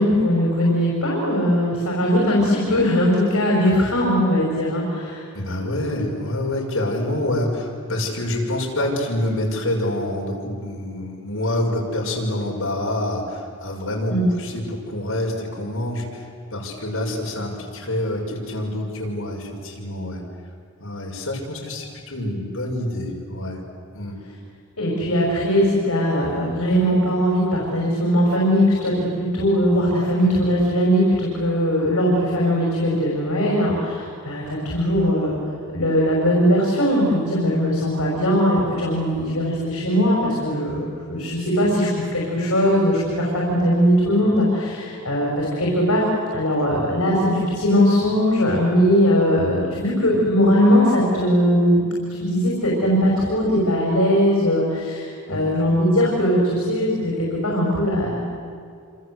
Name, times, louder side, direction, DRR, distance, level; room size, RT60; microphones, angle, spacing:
voice 1, 0.0-5.2 14.1-14.3 24.8-35.4 35.7-46.0 46.3-51.8 52.2-58.2, equal, 85° left, -3 dB, 6.1 m, -20 dB
voice 2, 5.3-20.2 20.8-23.6 23.9-24.2 46.7-46.8 55.3-55.6, left 1 dB, 65° left, -1 dB, 6.3 m, -27 dB
27.0 x 27.0 x 8.1 m, 2.3 s
head